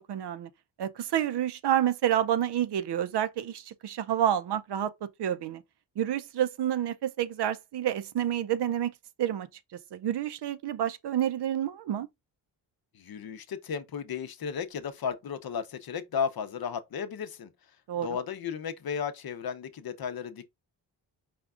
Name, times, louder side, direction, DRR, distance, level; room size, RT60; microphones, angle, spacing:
voice 1, 0.1-0.5 0.8-4.9 5.2-5.6 6.0-8.9 9.2-9.5 9.9-12.1 17.9-18.2, right 11 dB, 65° right, 0.5 m, -29 dB
voice 2, 13.0-17.5 18.0-20.5, left 7 dB, 55° left, 0.6 m, -34 dB
5.0 x 2.3 x 3.6 m
wide cardioid pair, 130°, 44 cm